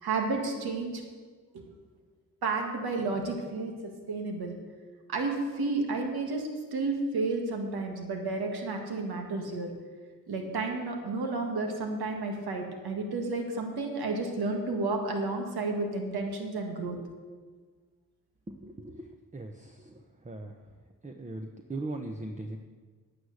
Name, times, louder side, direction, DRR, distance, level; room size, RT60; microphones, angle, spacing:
voice 1, 0.0-1.0 1.5-1.6 2.4-4.5 5.1-9.7 10.3-17.0, right 3 dB, 85° right, 3 dB, 1.8 m, -31 dB
voice 2, 18.5-19.1 19.3-20.0 20.2-20.5 21.0-22.6, right 2 dB, 20° right, 4 dB, 1.0 m, -39 dB
9.8 x 9.3 x 6.5 m, 1.5 s
cardioid pair, 50°, 37 cm